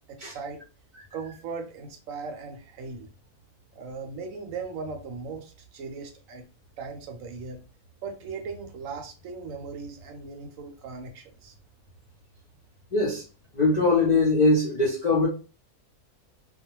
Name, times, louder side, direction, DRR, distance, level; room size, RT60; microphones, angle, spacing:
voice 1, 0.1-0.6 1.1-3.1 3.8-6.4 6.8-7.6 8.0-11.5, right 4 dB, 70° right, 0.9 m, -38 dB
voice 2, 12.9-13.2 13.6-15.3, left 3 dB, 50° left, 0.5 m, -21 dB
2.3 x 2.2 x 2.9 m
omnidirectional pair, 1.5 m